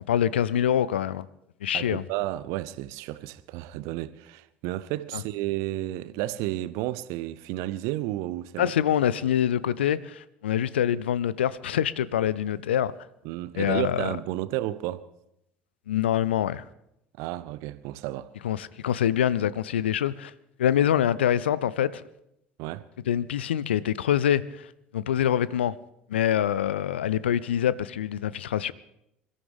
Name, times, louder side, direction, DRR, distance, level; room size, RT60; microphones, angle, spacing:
voice 1, 0.1-1.3 1.6-2.0 5.1-5.2 8.6-12.9 13.6-14.1 15.9-16.6 18.4-20.3 20.6-22.0 23.1-24.7 24.9-25.7 26.1-28.7, left 10 dB, 75° left, 0.5 m, -25 dB
voice 2, 1.7-8.7 13.2-15.1 17.2-18.3 22.6-22.9, right 15 dB, 60° right, 0.7 m, -32 dB
27.0 x 14.0 x 3.6 m
figure-of-eight pair, 65°, 6 cm